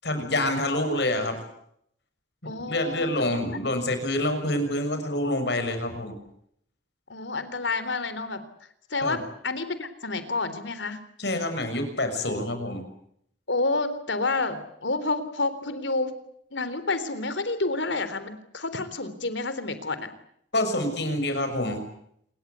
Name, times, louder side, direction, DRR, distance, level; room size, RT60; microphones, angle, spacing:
voice 1, 0.0-1.4 2.7-6.1 9.0-9.2 11.2-12.8 20.5-21.8, left 1 dB, 65° left, 7 dB, 6.7 m, -27 dB
voice 2, 2.5-3.6 7.1-8.4 8.9-11.0 13.5-16.2 16.5-20.1, left 3 dB, 85° left, 12 dB, 3.7 m, -29 dB
27.5 x 22.5 x 8.3 m, 0.72 s
head